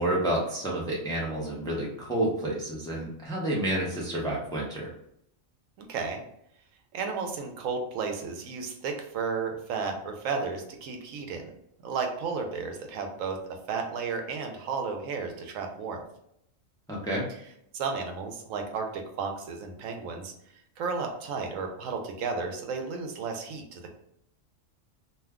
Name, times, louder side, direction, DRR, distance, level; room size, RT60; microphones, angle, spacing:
voice 1, 0.0-4.9 16.9-17.3, right 1 dB, 5° left, -3 dB, 0.4 m, -29 dB
voice 2, 5.8-6.2 6.9-11.5 11.8-13.4 13.7-16.0 17.7-20.3 20.8-23.9, right 5 dB, 80° right, 3 dB, 1.0 m, -33 dB
2.5 x 2.2 x 3.5 m, 0.75 s
omnidirectional pair, 1.3 m